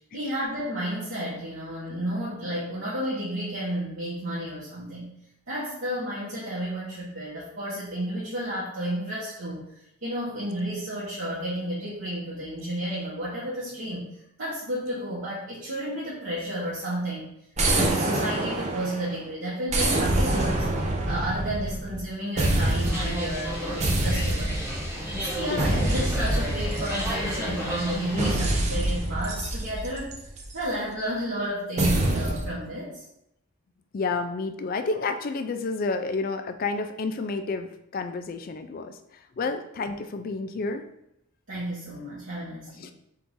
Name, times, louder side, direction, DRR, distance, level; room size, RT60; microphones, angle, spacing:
voice 1, 0.1-5.1 5.5-14.1 14.4-17.3 17.7-20.7 21.1-30.2 30.5-33.0 41.5-42.9, right 1 dB, 65° right, -10 dB, 1.3 m, -32 dB
sound 1, 17.6-19.2 19.7-22.0 22.4-23.2 23.8-24.8 25.6-27.4 28.2-30.6 31.8-32.5, right 1 dB, 35° right, 0.5 m, -26 dB
sound 2, 22.8-28.3, equal, 10° right, 1.3 m, -32 dB
voice 2, 25.5-25.9 28.1-28.3 33.9-40.8 42.8-42.9, left 3 dB, 45° left, 8 dB, 0.3 m, -30 dB
3.7 x 2.6 x 4.5 m, 0.79 s
head